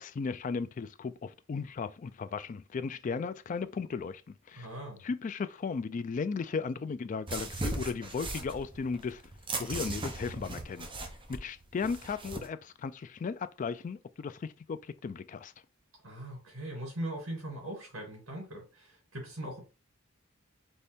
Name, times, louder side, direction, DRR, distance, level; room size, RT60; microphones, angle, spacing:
voice 1, 0.0-4.2 4.5-4.7 5.0-9.2 9.6-10.9 11.3-15.5, left 5 dB, 40° left, 0.3 m, -36 dB
voice 2, 4.6-5.0 16.0-19.7, right 1 dB, 85° right, 2.4 m, -40 dB
sound 1, 7.3-12.5, right 2 dB, 25° right, 0.8 m, -38 dB
4.1 x 3.3 x 3.5 m
head